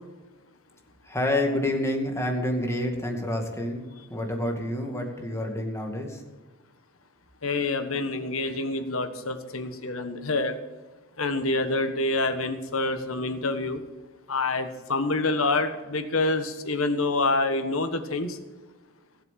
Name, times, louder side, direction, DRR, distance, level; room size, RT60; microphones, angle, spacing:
voice 1, 1.0-6.2, left 1 dB, 15° left, 2 dB, 2.1 m, -28 dB
voice 2, 7.4-10.6 11.2-13.8 14.3-18.4, left 2 dB, 70° left, 9 dB, 1.4 m, -27 dB
16.5 x 7.6 x 7.5 m, 1.2 s
head